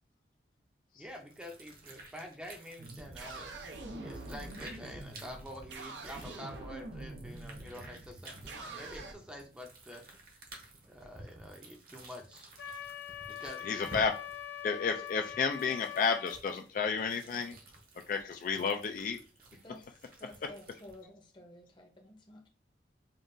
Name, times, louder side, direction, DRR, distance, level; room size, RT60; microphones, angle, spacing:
voice 1, 1.0-3.5 4.0-10.0 10.9-12.5 13.3-13.9, equal, 5° right, 2 dB, 0.5 m, -47 dB
sound 1, 1.1-21.0, right 2 dB, 55° right, 1.0 m, -54 dB
sound 2, 2.8-9.1, right 2 dB, 85° right, 0.7 m, -45 dB
Wind instrument woodwind instrument, 12.6-16.4, left 10 dB, 70° left, 0.8 m, -43 dB
voice 2, 13.6-14.2 14.6-17.6 18.1-19.2, left 5 dB, 50° left, 5 dB, 0.3 m, -31 dB
voice 3, 19.6-22.5, left 1 dB, 25° left, 2 dB, 0.7 m, -53 dB
5.2 x 2.4 x 2.6 m, 0.36 s
head